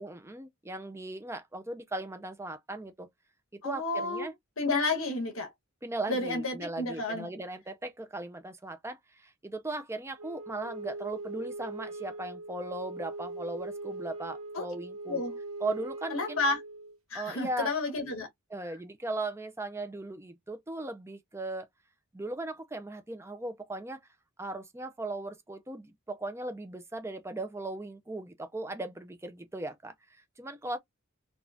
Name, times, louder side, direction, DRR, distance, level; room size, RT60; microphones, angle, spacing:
voice 1, 0.0-3.1 3.5-4.3 5.8-15.2 15.6-16.4 17.1-17.7 18.5-21.7 22.1-24.0 24.4-29.9 30.4-30.8, right 2 dB, 10° right, 0.6 m, -38 dB
voice 2, 3.6-4.3 4.6-5.5 6.1-7.3 14.5-14.7 15.1-15.3 16.1-16.6 17.1-18.3, left 3 dB, 65° left, 1.4 m, -31 dB
Wind instrument woodwind instrument, 10.2-17.0, right 2 dB, 80° right, 1.2 m, -41 dB
4.0 x 2.4 x 2.7 m
head